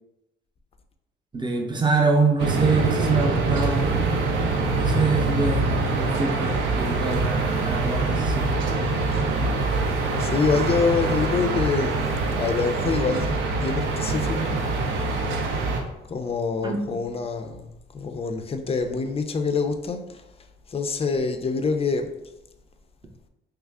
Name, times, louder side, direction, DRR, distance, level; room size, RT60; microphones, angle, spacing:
voice 1, 1.3-4.0 4.8-8.6 16.6-17.0, right 3 dB, 20° right, 0.7 m, -25 dB
sound 1, 2.4-15.8, right 3 dB, 80° right, 0.6 m, -24 dB
voice 2, 8.8-9.2 10.2-14.6 16.1-20.2 20.7-22.1, left 4 dB, 30° left, 0.4 m, -26 dB
3.1 x 2.4 x 3.5 m
cardioid pair, 90°, 20 cm